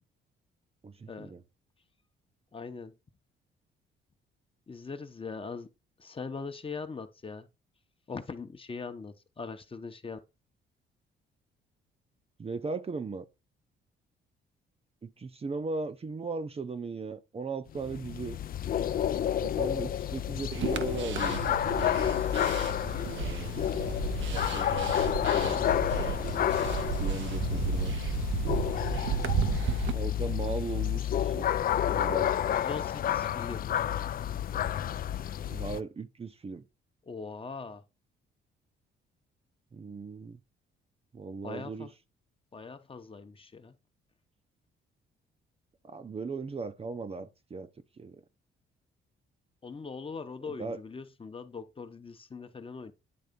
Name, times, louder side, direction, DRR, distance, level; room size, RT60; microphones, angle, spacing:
voice 1, 0.8-1.4 12.4-13.3 15.0-18.4 19.4-21.6 23.1-23.6 24.3-24.9 25.3-26.4 27.0-27.9 29.9-31.5 31.9-32.3 35.5-36.6 39.7-40.4 41.1-41.9 45.8-47.7 48.0-48.2 50.5-50.8, right 4 dB, 30° right, 0.7 m, -38 dB
voice 2, 2.5-2.9 4.7-5.7 6.0-7.5 8.1-10.2 32.5-33.7 37.0-37.8 41.4-41.9 42.5-43.7 49.6-52.9, left 4 dB, 25° left, 0.9 m, -41 dB
sound 1, 17.7-35.8, left 10 dB, 45° left, 0.4 m, -30 dB
sound 2, 20.5-29.9, right 8 dB, 70° right, 0.8 m, -34 dB
9.5 x 3.4 x 5.2 m
cardioid pair, 90°, 20 cm